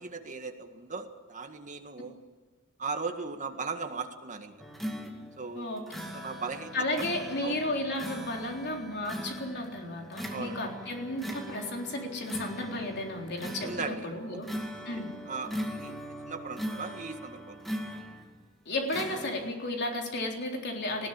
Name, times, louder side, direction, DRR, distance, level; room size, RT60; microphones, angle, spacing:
voice 1, 0.0-2.2 2.8-4.5 5.4-6.7 7.4-7.6 10.3-10.6 13.6-14.4 15.3-16.0 16.3-17.7, right 4 dB, 35° right, 5 dB, 1.9 m, -38 dB
sound 1, 4.6-18.4 18.9-19.3, equal, ahead, 2.1 m, -40 dB
voice 2, 6.7-14.5 14.9-15.1 18.7-21.1, left 1 dB, 50° left, 1 dB, 3.8 m, -33 dB
20.0 x 16.5 x 9.0 m, 1.4 s
head